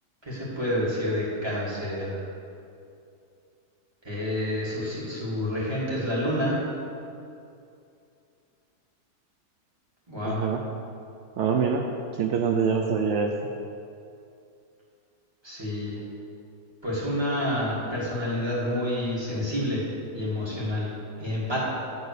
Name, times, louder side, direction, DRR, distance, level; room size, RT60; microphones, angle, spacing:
voice 1, 0.2-2.2 4.0-6.6 10.1-10.4 15.4-16.0 16.8-19.8 20.1-20.9 21.2-21.6, left 1 dB, 15° right, -7 dB, 2.0 m, -28 dB
voice 2, 10.2-10.6 11.4-11.9 12.2-13.3, right 6 dB, 75° right, 2 dB, 0.6 m, -24 dB
9.2 x 4.2 x 6.6 m, 2.6 s
omnidirectional pair, 1.7 m